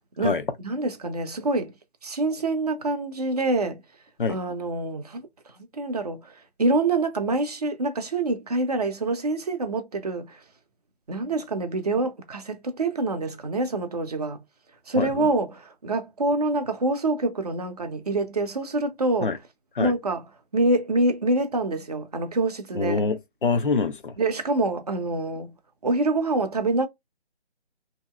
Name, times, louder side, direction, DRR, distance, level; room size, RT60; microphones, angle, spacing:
voice 1, 0.6-1.7 2.0-3.8 4.3-5.3 5.6-10.4 11.1-14.4 14.9-19.4 19.8-20.2 20.5-23.0 24.2-25.5 25.8-26.9, right 2 dB, 40° right, 0.6 m, -26 dB
voice 2, 14.9-15.3 19.2-19.4 19.8-19.9 22.7-24.1, left 4 dB, 55° left, 0.6 m, -25 dB
2.8 x 2.8 x 2.2 m
figure-of-eight pair, 145°, 32 cm